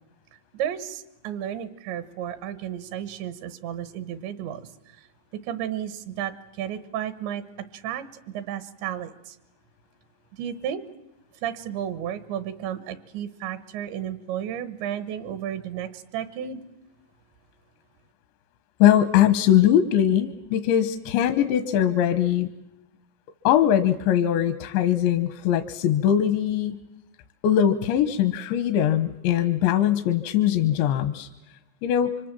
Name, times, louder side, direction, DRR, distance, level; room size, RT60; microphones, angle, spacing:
voice 1, 0.5-4.6 5.4-7.4 7.7-9.4 10.3-10.8 11.4-16.6, right 10 dB, 80° right, 13 dB, 3.5 m, -33 dB
voice 2, 18.8-22.5 23.5-26.8 27.4-31.3 31.8-32.1, left 10 dB, 85° left, 10 dB, 3.4 m, -21 dB
29.5 x 25.0 x 7.6 m, 0.89 s
omnidirectional pair, 5.1 m